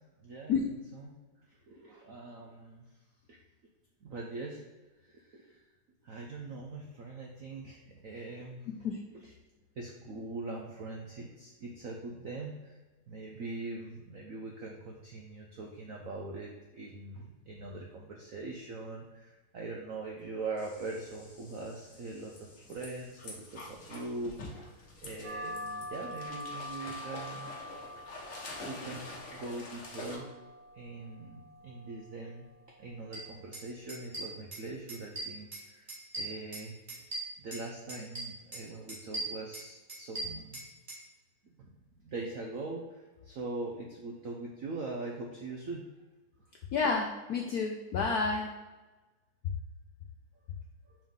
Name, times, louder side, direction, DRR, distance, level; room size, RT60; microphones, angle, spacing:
voice 1, 0.2-0.5 0.9-1.1 1.5-2.9 3.3-3.4 4.0-4.6 5.0-5.6 6.0-9.3 9.7-12.8 13.1-27.5 28.6-30.3 30.7-32.5 32.8-35.9 36.2-37.0 37.4-40.6 41.4-45.8 50.8-51.0, right 3 dB, 75° right, 0 dB, 0.7 m, -42 dB
sound 1, 20.6-30.2, left 2 dB, 45° left, 1.3 m, -47 dB
sound 2, 25.2-34.3, left 1 dB, 50° right, 2.3 m, -46 dB
sound 3, 33.1-33.2 33.5-33.6 33.9-34.6 34.9-35.6 35.9-37.6 37.9-38.6 38.9-41.0, right 2 dB, 25° right, 1.9 m, -39 dB
voice 2, 46.7-48.5, left 4 dB, 80° left, 2 dB, 0.8 m, -30 dB
5.5 x 5.1 x 3.7 m, 1.2 s
omnidirectional pair, 2.3 m